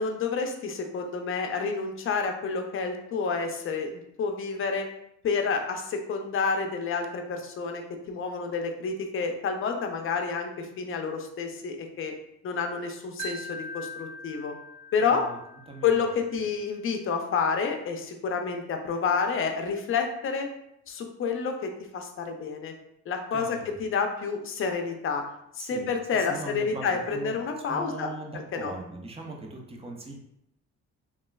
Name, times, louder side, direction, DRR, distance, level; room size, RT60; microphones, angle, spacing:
voice 1, 0.0-4.9 5.2-7.8 8.1-12.1 12.4-14.5 14.9-15.2 15.8-20.5 20.9-22.7 23.1-25.2 25.7-28.1 28.5-28.7, left 5 dB, 45° left, 4 dB, 0.5 m, -29 dB
Wind chime, 13.2-16.3, left 1 dB, 70° right, 0.6 m, -42 dB
voice 2, 15.0-15.4 15.7-16.0 23.3-23.8 25.6-27.4 27.7-30.2, right 2 dB, 20° right, 1 dB, 0.5 m, -40 dB
3.0 x 2.4 x 2.3 m, 0.78 s
cardioid pair, 90°, 30 cm